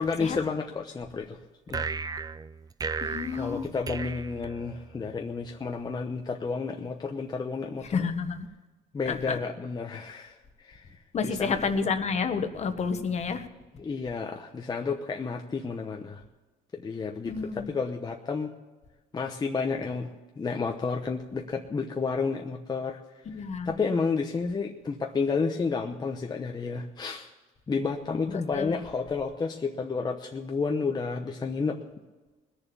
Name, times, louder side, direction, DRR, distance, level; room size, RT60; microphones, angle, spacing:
voice 1, 0.0-1.4 1.7-1.9 3.3-8.1 8.9-10.9 11.2-11.6 13.7-16.2 16.7-18.5 19.1-23.0 23.6-27.3 27.7-31.8, left 4 dB, 25° left, 2 dB, 0.9 m, -31 dB
sound 1, 1.7-5.1, right 5 dB, 20° right, 0.5 m, -35 dB
voice 2, 3.0-3.6 7.9-8.5 9.1-9.4 11.1-13.5 17.2-17.7 23.3-23.7 28.5-28.8, left 5 dB, 40° left, 8 dB, 1.4 m, -30 dB
20.5 x 7.0 x 6.9 m, 1.2 s
cardioid pair, 110°, 17 cm